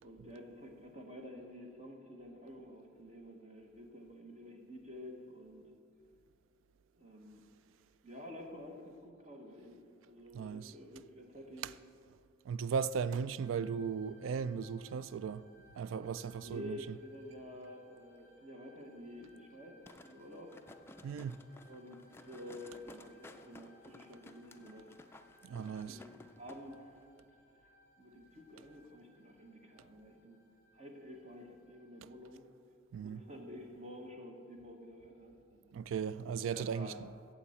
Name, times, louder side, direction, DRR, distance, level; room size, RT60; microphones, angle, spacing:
voice 1, 0.0-5.7 6.9-7.4 8.0-11.7 16.4-20.6 21.7-24.9 25.6-27.0 27.5-30.4 30.7-32.5 32.9-35.7 36.4-37.1, left 1 dB, 35° right, 1.2 m, -50 dB
voice 2, 10.3-10.7 12.5-15.4 15.8-16.8 21.0-21.4 25.4-26.0 32.9-33.2 35.7-36.9, right 6 dB, 85° right, 0.3 m, -37 dB
sound 1, 13.4-32.2, left 1 dB, 60° right, 3.3 m, -66 dB
sound 2, 19.9-26.6 26.9-27.0, left 2 dB, 10° left, 0.3 m, -56 dB
15.5 x 7.3 x 4.3 m
head